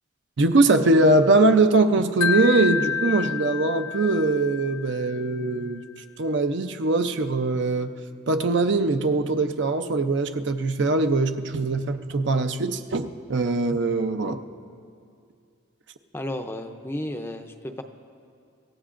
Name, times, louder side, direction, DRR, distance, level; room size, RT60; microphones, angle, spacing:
voice 1, 0.4-5.8 6.2-7.9 8.3-14.4, right 2 dB, 60° right, 8 dB, 0.6 m, -22 dB
Wind chime, 2.2-5.3, left 7 dB, 85° left, 0.3 m, -29 dB
voice 2, 16.1-17.8, left 1 dB, 10° left, 6 dB, 0.5 m, -33 dB
26.0 x 14.5 x 2.5 m, 2.4 s
head